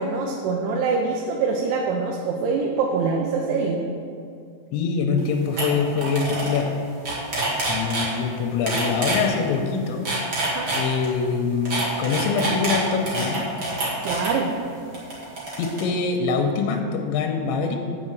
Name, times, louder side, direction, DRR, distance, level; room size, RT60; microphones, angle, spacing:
voice 1, 0.0-3.8 10.5-10.7 14.0-14.5, right 4 dB, 85° right, 0 dB, 3.1 m, -24 dB
voice 2, 4.7-6.7 7.7-10.1 10.7-13.5 15.6-17.8, left 5 dB, 90° left, 3 dB, 3.0 m, -24 dB
sound 1, 5.2-5.3 5.6-5.7 6.0-6.6 6.9-8.1 8.7-9.2 9.9-11.1 11.7-14.3 14.9-15.8, right 2 dB, 50° right, 1.5 m, -26 dB
7.8 x 5.5 x 7.5 m, 2.3 s
omnidirectional pair, 5.2 m